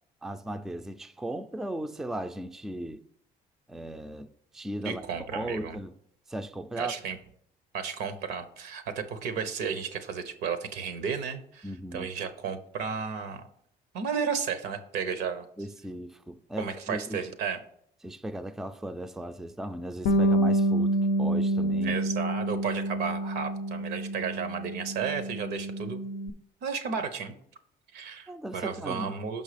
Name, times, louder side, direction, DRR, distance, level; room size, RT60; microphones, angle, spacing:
voice 1, 0.2-3.0 3.7-5.0 5.3-5.9 6.3-6.9 11.6-12.1 15.6-17.2 18.0-22.0 28.3-29.1, right 1 dB, ahead, 0.3 m, -37 dB
voice 2, 4.8-5.8 6.8-7.2 7.7-13.5 13.9-15.4 16.6-17.6 21.8-26.0 26.6-27.3 27.9-29.4, right 6 dB, 80° right, 0.9 m, -33 dB
Bass guitar, 20.1-26.3, right 1 dB, 65° left, 0.5 m, -28 dB
5.9 x 5.4 x 5.0 m
cardioid pair, 110°, 17 cm